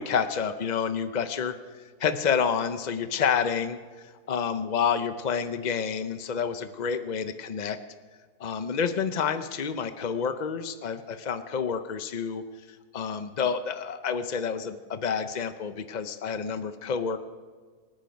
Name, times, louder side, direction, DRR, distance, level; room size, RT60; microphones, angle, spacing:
voice 1, 0.0-1.6 2.0-7.8 8.4-12.4 12.9-17.2, left 6 dB, 60° left, 9 dB, 0.4 m, -29 dB
26.5 x 9.0 x 5.2 m, 1.5 s
omnidirectional pair, 1.7 m